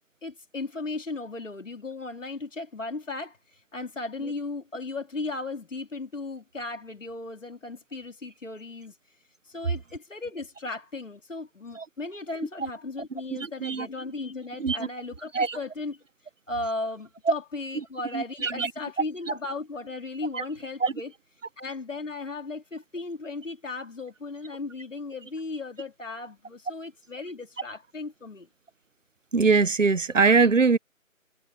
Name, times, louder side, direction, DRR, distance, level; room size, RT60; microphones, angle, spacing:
voice 1, 0.2-9.0 9.4-16.0 16.5-21.1 21.6-28.5, left 3 dB, 65° left, 3.0 m, -36 dB
voice 2, 13.4-13.9 14.6-14.8 15.3-15.6 18.1-18.7 20.3-20.4 20.8-20.9 29.3-30.8, right 4 dB, 65° right, 1.1 m, -22 dB
figure-of-eight pair, 175°, 41 cm